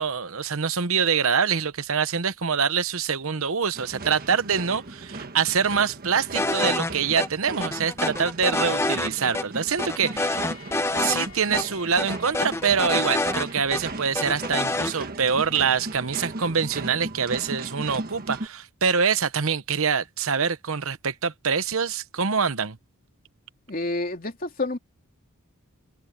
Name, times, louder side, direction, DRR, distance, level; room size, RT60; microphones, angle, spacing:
voice 1, 0.0-10.5 11.0-22.8, right 6 dB, 65° right, 1.0 m, -25 dB
sound 1, 3.7-18.5, right 2 dB, 40° right, 1.4 m, -37 dB
sound 2, 6.3-6.9 7.2-7.3 7.6-9.1 9.3-9.4 9.8-11.3 11.5-11.6 12.0-13.8 14.1-14.9, left 2 dB, 10° left, 0.9 m, -26 dB
Bowed string instrument, 9.7-14.5, left 7 dB, 85° left, 7.9 m, -50 dB
voice 2, 23.7-24.8, left 2 dB, 40° left, 3.0 m, -28 dB
open air
head